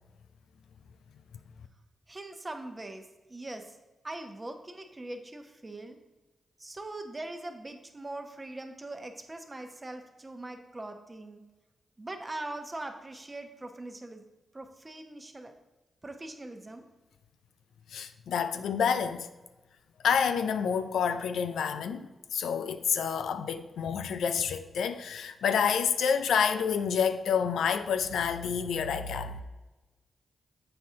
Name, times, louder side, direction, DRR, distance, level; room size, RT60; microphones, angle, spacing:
voice 1, 2.1-3.0 3.3-3.8 4.0-6.0 6.6-11.4 12.0-14.2 14.5-15.5 16.0-16.8, right 2 dB, 30° right, 0.9 m, -41 dB
voice 2, 17.9-19.3 20.0-29.4, left 7 dB, 80° left, 0.3 m, -28 dB
7.5 x 4.2 x 3.7 m
supercardioid pair, 40°, 0 cm